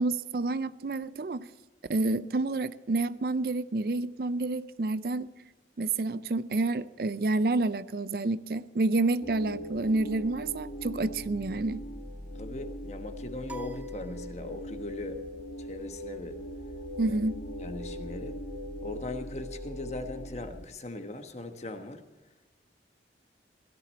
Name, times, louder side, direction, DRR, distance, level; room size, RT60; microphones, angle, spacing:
voice 1, 0.0-1.5 1.9-5.3 5.8-11.8 17.0-17.4, right 2 dB, 55° right, 15 dB, 0.4 m, -29 dB
sound 1, 9.2-20.6, equal, 70° left, 1.7 m, -40 dB
voice 2, 12.3-15.2 15.6-16.4 17.1-17.2 17.6-18.4 18.8-22.0, left 1 dB, 40° left, 7 dB, 1.2 m, -39 dB
sound 2, 13.5-14.9, right 3 dB, 10° right, 0.6 m, -48 dB
17.0 x 13.5 x 4.3 m, 1.2 s
head